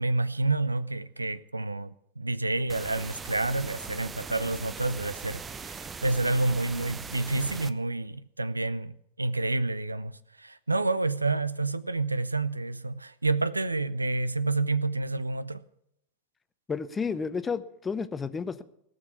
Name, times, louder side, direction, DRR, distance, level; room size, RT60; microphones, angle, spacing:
voice 1, 0.0-15.6, right 2 dB, 80° right, 0.5 m, -29 dB
sound 1, 2.7-7.7, right 5 dB, 20° right, 0.6 m, -40 dB
voice 2, 16.7-18.6, left 5 dB, 15° left, 0.8 m, -31 dB
18.0 x 6.4 x 9.4 m
figure-of-eight pair, 90°, 0 cm